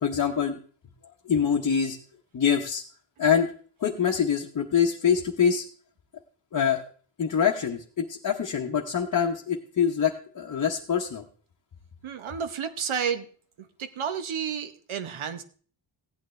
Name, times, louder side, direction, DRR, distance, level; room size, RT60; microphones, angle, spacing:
voice 1, 0.0-0.6 1.2-2.0 2.3-2.8 3.2-3.5 3.8-5.6 6.5-6.8 7.2-11.2, left 7 dB, 40° left, 0 dB, 0.8 m, -25 dB
voice 2, 12.0-13.3 13.6-15.4, right 7 dB, 80° right, 10 dB, 1.0 m, -31 dB
15.5 x 9.1 x 3.2 m, 0.44 s
wide cardioid pair, 140°, 48 cm